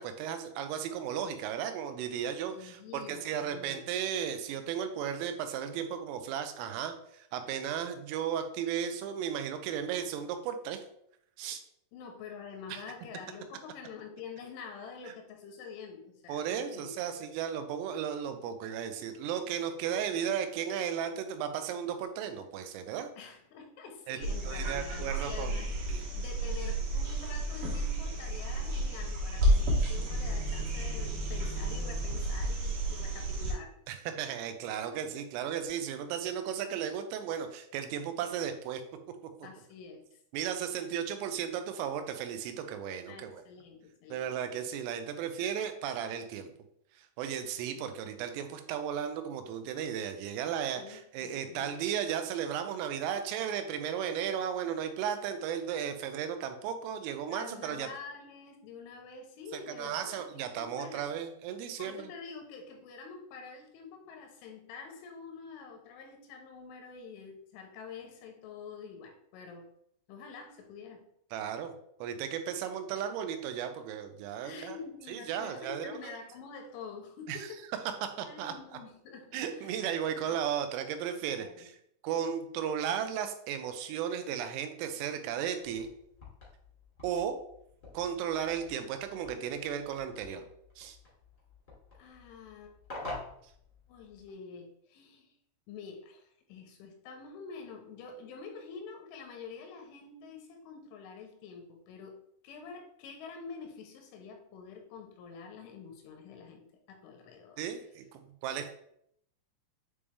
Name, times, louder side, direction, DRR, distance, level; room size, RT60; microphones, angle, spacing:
voice 1, 0.0-10.8 11.4-11.6 12.7-12.8 16.3-23.1 24.1-24.2 24.5-25.6 25.9-26.0 33.9-38.8 40.3-43.4 44.1-46.5 47.0-57.9 59.5-62.1 71.3-71.7 72.0-74.8 75.1-76.2 77.3-77.5 78.0-78.5 79.3-81.7 82.0-85.9 87.0-87.4 87.9-90.4 90.8-91.0 107.6-108.7, right 8 dB, 85° right, 8 dB, 3.3 m, -35 dB
voice 2, 2.5-3.8 11.9-16.9 23.2-29.6 29.9-33.8 39.4-40.2 43.1-44.3 47.7-48.0 50.8-51.7 57.3-61.1 61.8-69.7 70.1-71.1 74.4-78.0 78.2-79.8 80.1-80.4 81.4-81.7 92.0-92.7 93.9-95.3 95.7-102.1 102.4-107.6, left 5 dB, 85° left, 4 dB, 3.0 m, -47 dB
sound 1, 24.2-33.5 35.6-35.7, right 1 dB, 70° right, 3.4 m, -31 dB
sound 2, 85.6-94.3, left 2 dB, 40° left, 1.0 m, -48 dB
8.4 x 3.5 x 3.2 m, 0.71 s
omnidirectional pair, 5.8 m